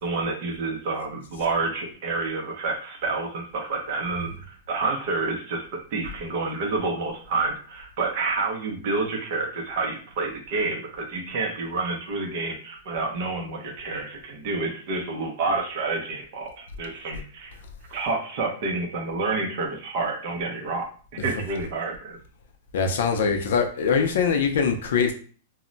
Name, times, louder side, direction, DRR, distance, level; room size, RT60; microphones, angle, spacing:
voice 1, 0.0-5.6 5.9-17.5 17.9-20.9 21.2-22.2, right 3 dB, 35° right, 0.6 m, -29 dB
voice 2, 22.7-25.1, left 6 dB, 60° left, 0.4 m, -22 dB
2.1 x 2.0 x 3.8 m
supercardioid pair, 180°, 0 cm